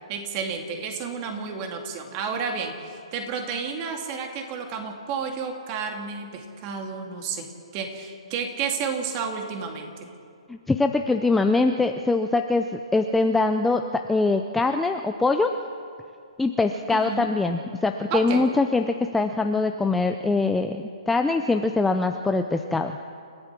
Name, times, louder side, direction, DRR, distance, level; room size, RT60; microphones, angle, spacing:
voice 1, 0.1-10.1 16.9-17.3 18.1-18.5, right 5 dB, 25° right, 4 dB, 2.2 m, -31 dB
voice 2, 10.5-15.5 16.4-22.9, left 3 dB, 5° left, 5 dB, 0.5 m, -23 dB
29.0 x 15.0 x 6.0 m, 2.4 s
hypercardioid pair, 165°, 4 cm